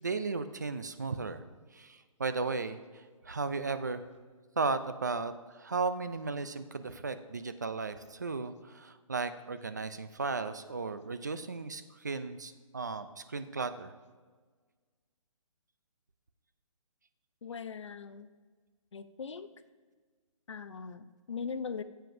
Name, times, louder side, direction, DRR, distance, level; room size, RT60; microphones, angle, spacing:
voice 1, 0.0-1.4 1.7-2.8 3.2-4.0 4.6-13.9, right 4 dB, 30° right, 11 dB, 0.4 m, -35 dB
voice 2, 17.4-18.3 18.9-19.5 20.5-21.8, left 5 dB, 55° left, 11 dB, 0.6 m, -40 dB
16.5 x 7.7 x 2.6 m, 1.5 s
hypercardioid pair, 180°, 18 cm